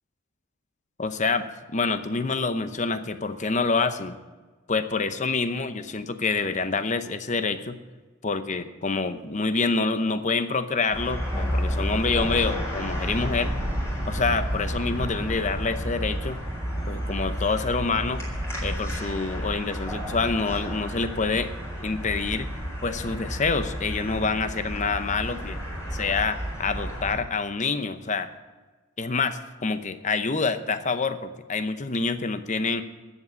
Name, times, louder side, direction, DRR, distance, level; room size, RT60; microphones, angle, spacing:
voice 1, 1.0-4.2 4.7-7.8 8.2-13.5 14.1-16.4 16.9-18.2 18.6-21.5 21.8-22.5 22.8-25.6 25.9-28.3 29.0-32.8, left 4 dB, 35° left, 10 dB, 0.8 m, -27 dB
sound 1, 10.9-27.2, equal, 15° left, 4.6 m, -31 dB
12.5 x 8.2 x 8.3 m, 1.3 s
head